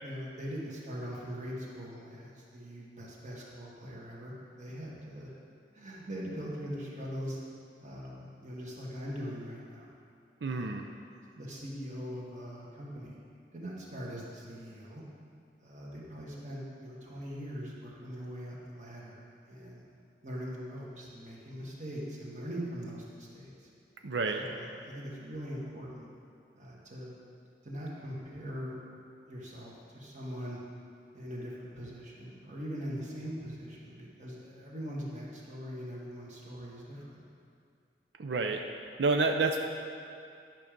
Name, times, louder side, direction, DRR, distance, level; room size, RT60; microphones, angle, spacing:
voice 1, 0.0-5.3 5.7-7.4 7.8-9.9 10.5-10.9 11.4-13.2 13.5-15.0 15.6-19.8 20.2-23.7 24.3-26.1 26.6-27.1 27.6-28.8 29.3-30.6 31.1-37.2, equal, 45° right, -4 dB, 1.8 m, -41 dB
voice 2, 10.4-10.9 24.0-24.4 38.2-38.6 39.0-39.6, right 3 dB, 85° right, 4 dB, 0.6 m, -28 dB
11.5 x 6.2 x 5.2 m, 2.4 s
head